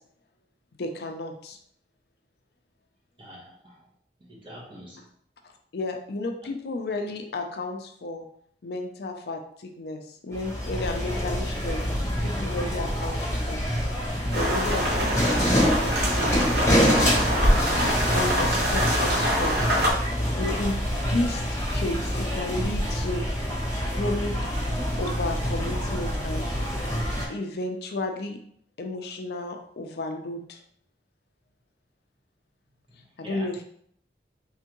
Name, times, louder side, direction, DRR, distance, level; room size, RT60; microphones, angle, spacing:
voice 1, 0.8-1.6 5.4-8.3 8.6-11.9 12.2-13.6 14.3-15.4 15.7-17.0 17.5-19.8 20.3-21.4 21.7-23.2 23.9-26.5 27.3-28.4 28.8-30.6 33.2-33.6, left 2 dB, 60° left, 4 dB, 0.5 m, -33 dB
voice 2, 3.2-3.8 4.3-5.0 32.9-33.5, equal, 30° right, -4 dB, 1.2 m, -45 dB
sound 1, 10.3-27.2, equal, 15° left, 1.1 m, -26 dB
sound 2, 14.3-19.9, equal, 60° right, 1.0 m, -26 dB
3.5 x 3.4 x 3.0 m, 0.65 s
head